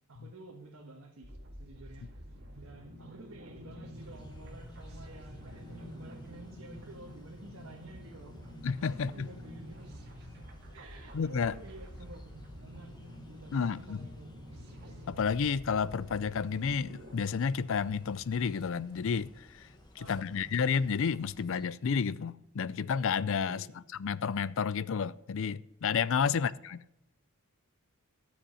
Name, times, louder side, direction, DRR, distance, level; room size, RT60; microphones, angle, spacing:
voice 1, 0.1-2.2 2.5-8.4 8.9-9.9 10.7-12.9 13.2-14.4 20.0-20.5 23.5-23.8 26.2-26.5, right 2 dB, 70° right, 1.5 m, -51 dB
sound 1, 1.2-17.2, equal, 50° right, 2.0 m, -48 dB
sound 2, 3.9-21.6, left 1 dB, 20° left, 1.5 m, -57 dB
voice 2, 8.6-9.3 11.1-11.5 13.5-14.0 15.1-19.6 20.1-23.6 24.0-26.5, left 6 dB, 60° left, 0.4 m, -31 dB
12.5 x 7.1 x 5.5 m
head